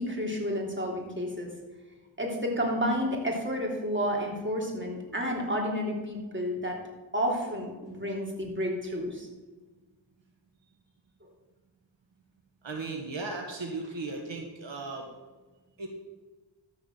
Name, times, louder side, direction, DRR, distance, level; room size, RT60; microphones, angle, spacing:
voice 1, 0.0-1.5 2.2-6.8 7.1-9.3, equal, 25° right, 0 dB, 3.1 m, -30 dB
voice 2, 12.6-15.1 15.8-15.9, right 3 dB, 75° right, 2 dB, 1.6 m, -36 dB
14.0 x 4.9 x 7.7 m, 1.3 s
wide cardioid pair, 60°, 46 cm